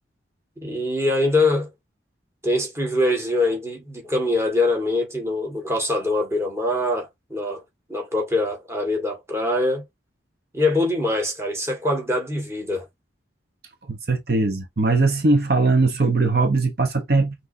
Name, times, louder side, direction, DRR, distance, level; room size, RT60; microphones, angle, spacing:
voice 1, 0.6-1.7 2.4-7.6 7.9-9.8 10.5-12.8, left 2 dB, 15° right, 1.7 m, -23 dB
voice 2, 13.9-17.3, right 3 dB, 55° right, 0.9 m, -20 dB
6.0 x 3.1 x 2.7 m
head